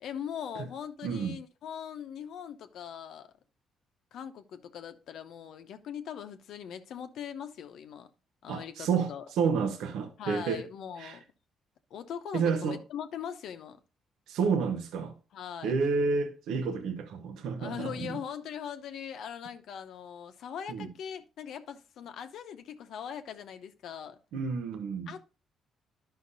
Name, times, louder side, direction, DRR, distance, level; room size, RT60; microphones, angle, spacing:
voice 1, 0.0-3.3 4.1-8.1 8.4-9.3 10.2-11.2 11.9-13.8 15.3-15.7 17.6-24.2 25.1-25.2, left 8 dB, 75° left, 0.8 m, -41 dB
voice 2, 1.0-1.4 8.5-10.6 11.0-11.2 12.3-12.8 14.3-15.1 15.6-18.1 20.7-20.9 24.3-25.1, right 5 dB, 85° right, 0.8 m, -30 dB
11.5 x 5.7 x 2.6 m
cardioid pair, 90°, 0 cm